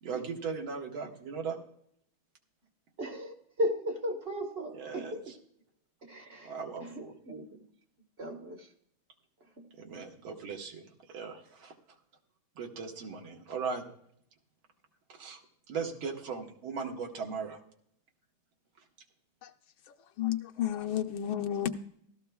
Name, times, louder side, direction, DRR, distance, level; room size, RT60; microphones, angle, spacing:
voice 1, 0.0-1.6 4.7-5.3 6.4-7.1 9.8-12.0 12.6-13.9 15.1-15.4 15.7-17.6, right 5 dB, 75° right, 2 dB, 2.2 m, -38 dB
voice 2, 3.0-5.2 6.0-6.5 6.8-7.6 8.2-8.7 9.6-9.7, equal, 35° right, 3 dB, 1.1 m, -36 dB
voice 3, 20.2-21.7, left 11 dB, 75° left, 5 dB, 1.4 m, -31 dB
16.0 x 13.0 x 2.3 m, 0.68 s
omnidirectional pair, 2.3 m